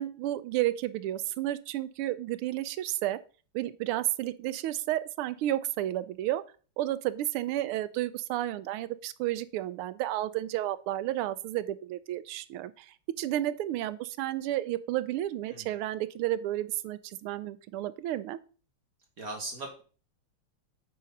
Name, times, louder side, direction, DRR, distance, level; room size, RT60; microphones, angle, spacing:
voice 1, 0.0-3.2 3.5-6.4 6.8-18.4, right 14 dB, 90° right, 15 dB, 1.5 m, -32 dB
voice 2, 19.2-19.8, right 2 dB, 45° right, 2 dB, 1.6 m, -39 dB
8.5 x 3.9 x 5.2 m, 0.39 s
omnidirectional pair, 2.3 m